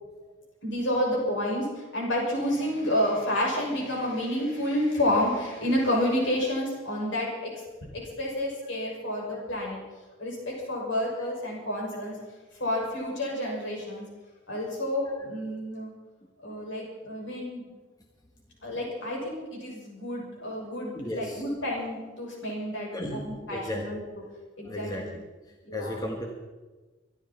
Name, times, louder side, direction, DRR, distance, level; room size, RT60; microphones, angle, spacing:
voice 1, 0.6-7.5 7.9-9.8 10.2-12.2 12.6-14.1 14.5-15.9 16.4-17.7 18.6-24.0 24.6-25.1 25.6-26.0, left 1 dB, 65° left, -2 dB, 6.4 m, -29 dB
voice 2, 20.9-21.4 22.9-23.8 24.6-26.3, left 1 dB, 20° left, 1 dB, 1.4 m, -35 dB
25.0 x 12.0 x 4.4 m, 1.3 s
head